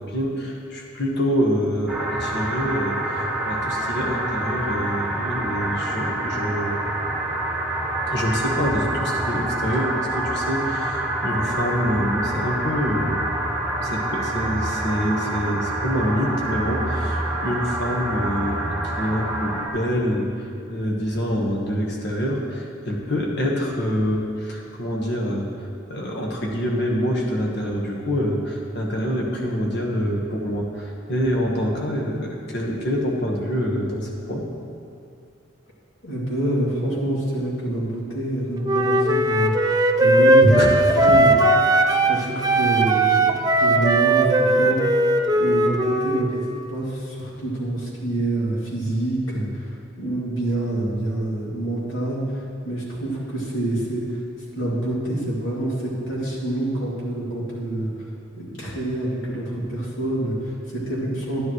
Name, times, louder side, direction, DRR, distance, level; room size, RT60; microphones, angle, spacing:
voice 1, 0.1-6.8 8.0-13.5 13.8-25.5 25.9-34.5 40.6-40.7 41.0-41.1, equal, 60° left, -1 dB, 1.4 m, -26 dB
sound 1, 1.9-19.7, right 1 dB, 5° right, 1.4 m, -27 dB
voice 2, 36.0-41.3 41.9-43.2 43.6-45.0 45.3-54.2 54.5-58.1 58.4-61.4, right 1 dB, 80° left, -5 dB, 2.6 m, -26 dB
Wind instrument woodwind instrument, 38.6-42.2 42.4-46.3, right 2 dB, 20° right, 0.5 m, -18 dB
11.5 x 10.5 x 3.2 m, 2.5 s
head